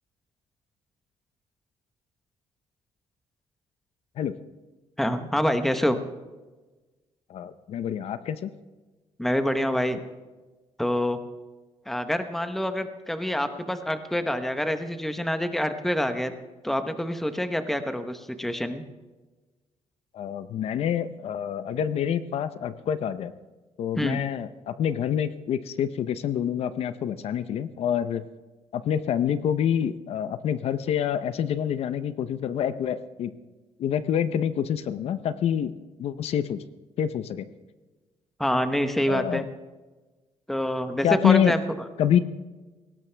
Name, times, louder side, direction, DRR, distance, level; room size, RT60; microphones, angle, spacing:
voice 1, 5.0-6.0 9.2-10.0 10.8-11.2 11.9-16.3 16.6-18.8 24.0-24.2 38.4-39.4 40.5-41.6, equal, ahead, 8 dB, 0.9 m, -26 dB
voice 2, 7.3-8.5 20.1-23.3 23.8-28.2 28.7-33.3 33.8-35.7 36.0-36.6 37.0-37.5 39.1-39.4 41.0-41.5 42.0-42.2, left 9 dB, 65° left, 13 dB, 0.7 m, -26 dB
18.0 x 17.5 x 3.4 m, 1.2 s
cardioid pair, 140°, 11 cm